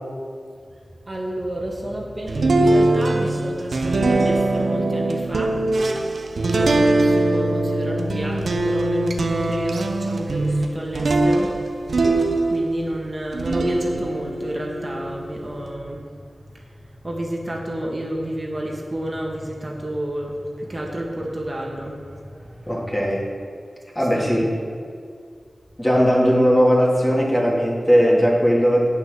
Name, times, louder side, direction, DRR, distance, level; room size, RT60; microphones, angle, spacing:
voice 1, 1.1-5.6 6.4-11.8 12.5-16.0 16.5-22.9 24.1-24.5, right 1 dB, 40° right, -2 dB, 2.0 m, -30 dB
sound 1, 2.3-12.9 13.3-15.7, right 2 dB, 85° right, 0.9 m, -21 dB
voice 2, 22.7-23.2 23.9-24.5 25.8-28.9, equal, 15° left, -4 dB, 3.0 m, -18 dB
8.9 x 6.8 x 6.9 m, 2.2 s
cardioid pair, 45°, 0 cm